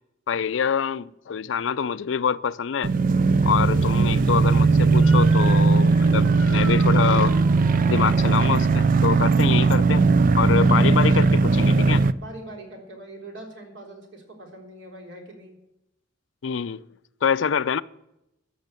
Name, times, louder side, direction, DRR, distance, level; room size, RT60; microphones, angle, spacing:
voice 1, 0.3-2.9 3.4-7.4 7.9-10.1 10.3-12.0 16.4-16.8 17.2-17.8, left 7 dB, 80° left, 0.4 m, -25 dB
sound 1, 2.8-12.1, right 4 dB, 45° right, 0.4 m, -18 dB
Motor vehicle (road) / Siren, 4.9-10.2, equal, 15° right, 2.3 m, -42 dB
voice 2, 12.1-15.6, right 1 dB, 70° right, 3.6 m, -43 dB
13.5 x 6.6 x 8.9 m
head